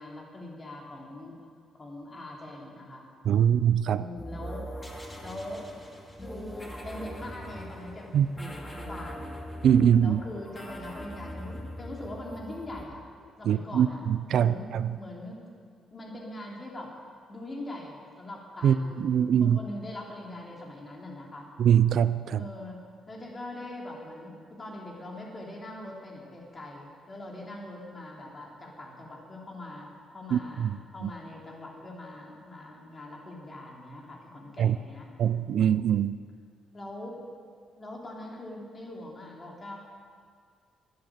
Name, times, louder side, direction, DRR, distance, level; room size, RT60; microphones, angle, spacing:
voice 1, 0.0-1.4 1.8-3.1 3.9-4.7 5.2-5.7 6.2-9.4 10.0-13.1 13.4-15.4 15.9-16.9 17.3-21.5 22.3-22.8 23.1-35.1 36.7-37.2 37.8-39.8, left 1 dB, 30° left, -1 dB, 3.2 m, -42 dB
voice 2, 3.2-4.0 8.1-8.3 9.6-10.2 13.5-15.0 18.6-19.6 21.6-22.4 30.3-31.1 34.6-34.8 35.2-36.2, right 9 dB, 70° right, 14 dB, 0.4 m, -23 dB
sound 1, 4.2-12.8, equal, 15° left, 2.3 m, -42 dB
12.0 x 10.5 x 7.8 m, 2.1 s
cardioid pair, 90°, 0 cm